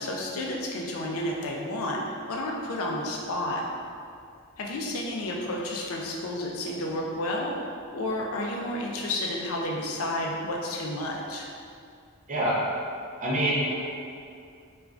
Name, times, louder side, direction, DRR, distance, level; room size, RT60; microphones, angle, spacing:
voice 1, 0.0-2.0 2.3-3.6 4.6-11.5, left 1 dB, 80° left, -1 dB, 0.4 m, -31 dB
voice 2, 12.3-12.6 13.2-13.7, right 1 dB, 35° right, -7 dB, 0.6 m, -25 dB
3.3 x 2.3 x 2.4 m, 2.4 s
head